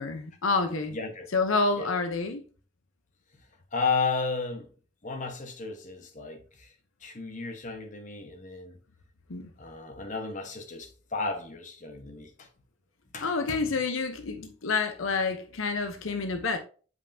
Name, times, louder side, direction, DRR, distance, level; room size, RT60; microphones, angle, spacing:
voice 1, 0.0-1.0 1.3-2.4 9.3-9.5 13.2-16.6, left 4 dB, 75° left, 0.8 m, -28 dB
voice 2, 0.9-1.3 1.8-1.9 3.7-4.7 5.0-6.7 7.0-8.8 9.6-12.5 13.1-13.8, left 4 dB, 40° left, 1.2 m, -33 dB
8.0 x 5.4 x 2.7 m
head